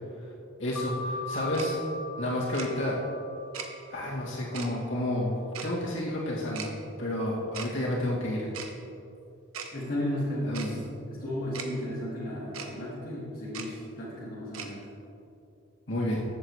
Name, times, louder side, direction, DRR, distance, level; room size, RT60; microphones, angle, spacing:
voice 1, 0.6-1.8 2.2-3.0 3.9-5.4 5.6-6.7 7.0-8.5 10.5-10.8 15.9-16.2, left 1 dB, 60° left, -6 dB, 2.3 m, -30 dB
sound 1, 0.7-5.9, left 2 dB, 85° left, 2.0 m, -40 dB
Tick-tock, 1.5-1.7 2.5-2.7 3.5-3.7 4.5-4.7 5.5-5.7 6.5-6.7 7.5-7.7 8.5-8.7 9.5-9.7 10.5-10.7 11.5-11.7 12.5-12.7 13.5-13.7 14.5-14.7, right 6 dB, 85° right, 0.9 m, -38 dB
voice 2, 9.7-14.8, left 1 dB, 40° left, -8 dB, 1.9 m, -34 dB
14.5 x 7.7 x 3.2 m, 2.6 s
head